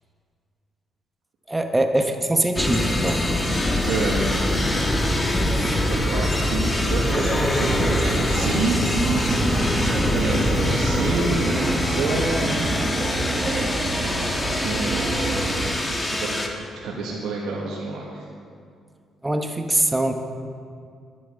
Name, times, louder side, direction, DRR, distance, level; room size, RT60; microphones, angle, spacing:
voice 1, 1.5-3.2 5.4-5.8 19.2-20.1, right 1 dB, 10° right, 5 dB, 1.0 m, -23 dB
sound 1, 2.5-16.5, left 1 dB, 20° left, 1.4 m, -24 dB
voice 2, 3.8-4.2 5.8-8.8 10.1-12.5 14.6-15.6 16.0-16.5 16.7-18.2, right 3 dB, 80° right, -3 dB, 1.5 m, -28 dB
sound 2, 7.1-15.7, right 2 dB, 40° right, 1.7 m, -27 dB
10.5 x 8.6 x 6.5 m, 2.3 s
cardioid pair, 90°, 0 cm